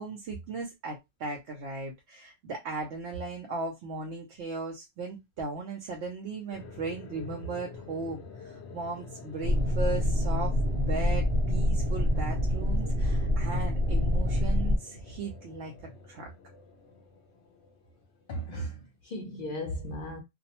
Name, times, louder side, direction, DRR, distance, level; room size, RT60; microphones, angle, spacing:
voice 1, 0.0-15.7 16.1-16.3, right 3 dB, 85° right, 0.9 m, -37 dB
sound 1, 6.5-18.6, left 4 dB, 85° left, 0.9 m, -48 dB
sound 2, 9.4-14.8, left 1 dB, 60° right, 0.8 m, -26 dB
voice 2, 18.3-20.2, equal, 60° left, 0.7 m, -36 dB
2.5 x 2.0 x 2.8 m
omnidirectional pair, 1.1 m